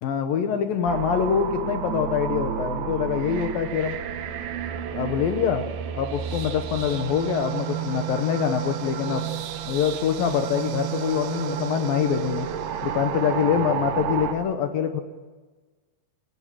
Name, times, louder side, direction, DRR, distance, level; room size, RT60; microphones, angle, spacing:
voice 1, 0.0-4.0 4.9-5.7 5.9-9.3 9.7-12.5 12.8-15.0, left 8 dB, 70° left, 7 dB, 2.2 m, -25 dB
sound 1, 0.9-14.3, right 9 dB, 65° right, 2.6 m, -31 dB
28.0 x 17.5 x 7.7 m, 1.3 s
omnidirectional pair, 5.5 m